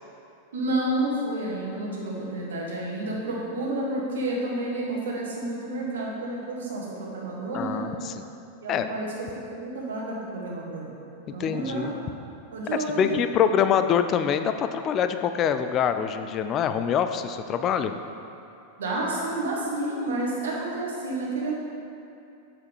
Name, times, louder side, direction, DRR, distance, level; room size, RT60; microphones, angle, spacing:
voice 1, 0.5-7.9 8.6-10.9 11.3-11.9 12.5-13.2 18.8-21.5, right 2 dB, 65° right, -3 dB, 1.3 m, -30 dB
voice 2, 7.5-8.2 8.7-8.9 11.4-11.9 12.7-17.9, left 8 dB, 30° left, 9 dB, 0.3 m, -25 dB
7.8 x 5.6 x 3.5 m, 2.7 s
figure-of-eight pair, 90°, 0 cm